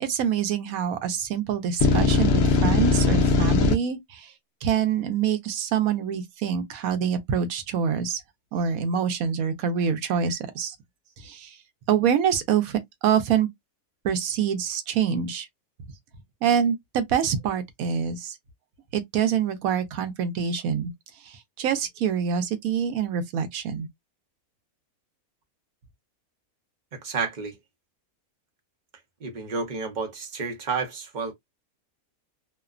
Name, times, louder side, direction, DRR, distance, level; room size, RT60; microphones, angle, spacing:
voice 1, 0.0-4.3 4.6-8.2 8.5-10.8 11.2-11.6 11.9-13.5 14.0-15.5 16.4-18.4 18.9-20.9 21.2-23.9, right 8 dB, 75° right, 1.0 m, -26 dB
sound 1, 1.8-3.7, left 4 dB, 65° left, 0.7 m, -20 dB
voice 2, 26.9-27.6 29.2-31.3, right 4 dB, 40° right, 0.7 m, -30 dB
2.8 x 2.1 x 2.3 m
omnidirectional pair, 1.5 m